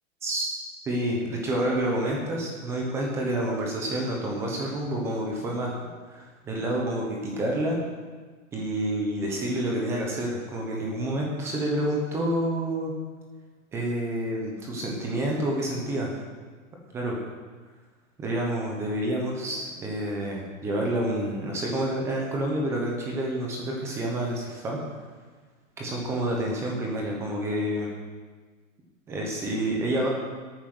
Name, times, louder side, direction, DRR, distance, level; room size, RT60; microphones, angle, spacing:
voice 1, 0.9-5.8 6.1-7.8 8.5-12.9 13.7-16.1 16.9-17.2 18.2-24.8 25.8-27.9 29.1-30.1, right 1 dB, 5° right, -1 dB, 0.9 m, -28 dB
13.0 x 9.0 x 6.1 m, 1.4 s
hypercardioid pair, 175°, 40 cm